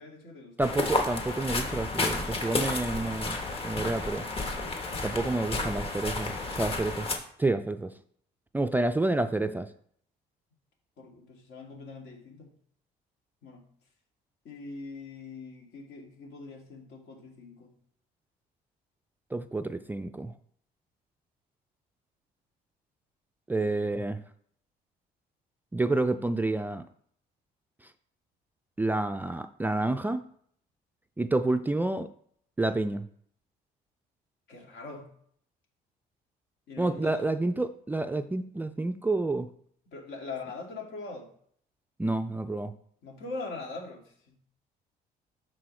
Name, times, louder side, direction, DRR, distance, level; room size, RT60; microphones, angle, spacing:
voice 1, 0.0-0.8 11.0-12.5 13.4-13.7 14.4-17.7 34.5-35.1 36.7-37.2 39.9-41.3 43.0-44.4, left 3 dB, 75° left, 0 dB, 2.1 m, -42 dB
sound 1, 0.6-7.2, left 2 dB, 35° left, 1.3 m, -31 dB
voice 2, 0.6-3.4 3.6-4.3 5.0-7.1 7.4-7.9 8.5-9.7 19.3-20.3 23.5-24.2 25.7-26.9 28.8-30.2 31.2-32.1 32.6-33.0 36.8-39.5 42.0-42.7, right 2 dB, 10° right, 9 dB, 0.3 m, -29 dB
12.5 x 4.3 x 3.2 m, 0.63 s
cardioid pair, 110°, 17 cm